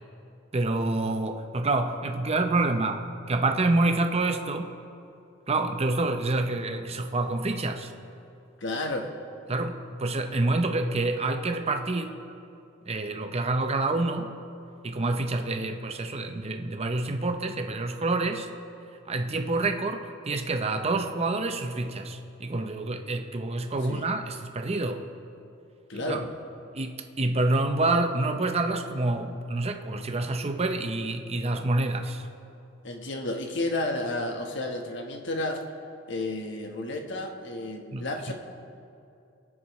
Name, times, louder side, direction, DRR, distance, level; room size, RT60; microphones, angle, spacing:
voice 1, 0.5-4.7 5.5-7.9 9.5-12.2 12.9-14.3 14.8-18.5 19.1-25.0 25.9-26.3 26.7-32.3 37.9-38.3, right 2 dB, 30° right, 5 dB, 0.7 m, -27 dB
voice 2, 8.6-9.1 23.9-24.1 25.9-26.2 32.8-35.6 36.1-38.3, left 2 dB, 65° left, 3 dB, 1.3 m, -31 dB
22.5 x 10.0 x 3.1 m, 2.6 s
head